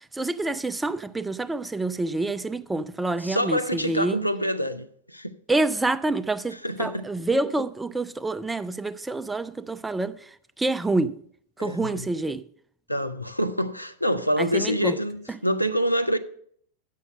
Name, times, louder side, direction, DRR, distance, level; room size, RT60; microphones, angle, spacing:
voice 1, 0.1-4.2 5.5-10.3 10.6-11.2 11.6-12.5 14.4-15.0, right 2 dB, 10° right, 0.4 m, -27 dB
voice 2, 3.2-5.3 6.6-7.1 11.6-12.1 12.9-16.2, equal, 90° left, 0.5 m, -26 dB
8.3 x 6.4 x 6.4 m
figure-of-eight pair, 90°, 0 cm